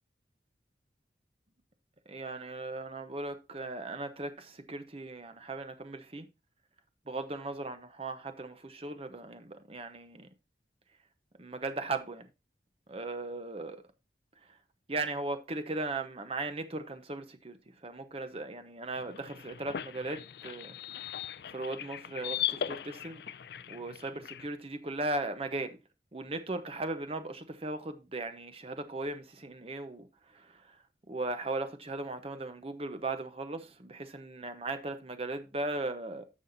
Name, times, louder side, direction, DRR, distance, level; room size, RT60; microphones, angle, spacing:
voice 1, 2.1-6.3 7.1-10.3 11.4-12.3 12.9-13.8 14.9-17.6 17.8-21.1 21.5-23.2 23.7-25.8 26.1-30.1 30.3-30.7 31.1-36.3, right 2 dB, 35° right, 0.9 m, -37 dB
sound 1, 19.0-24.5, left 10 dB, 60° left, 0.4 m, -39 dB
14.5 x 5.5 x 2.7 m
head